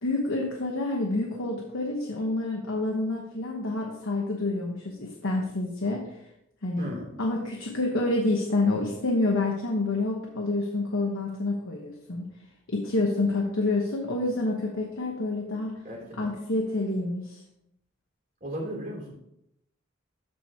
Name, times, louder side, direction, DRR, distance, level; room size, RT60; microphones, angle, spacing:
voice 1, 0.0-6.1 6.6-6.9 7.2-12.2 12.7-15.8 16.2-17.4, left 2 dB, 80° left, 0 dB, 1.1 m, -28 dB
voice 2, 6.8-7.1 15.8-16.4 18.4-19.1, equal, 45° right, -3 dB, 2.8 m, -36 dB
13.0 x 4.6 x 2.8 m, 0.80 s
head